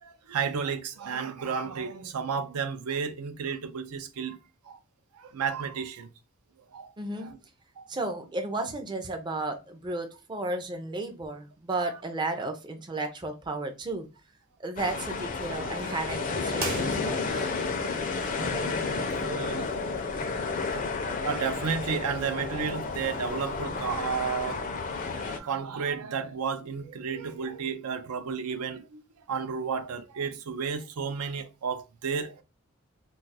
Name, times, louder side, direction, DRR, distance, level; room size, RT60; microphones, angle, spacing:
voice 1, 0.0-4.4 4.7-4.8 5.1-6.1 6.7-6.9 7.2-7.4 7.8-7.9 17.7-19.7 21.2-29.0 29.3-32.4, right 6 dB, 80° right, 0.4 m, -33 dB
voice 2, 7.0-7.3 7.9-14.1 14.6-17.5, right 2 dB, 20° right, 0.4 m, -33 dB
sound 1, 14.8-25.4, left 4 dB, 40° left, 0.4 m, -31 dB
sound 2, 16.5-17.6, right 3 dB, 45° right, 0.9 m, -36 dB
2.3 x 2.3 x 3.9 m
head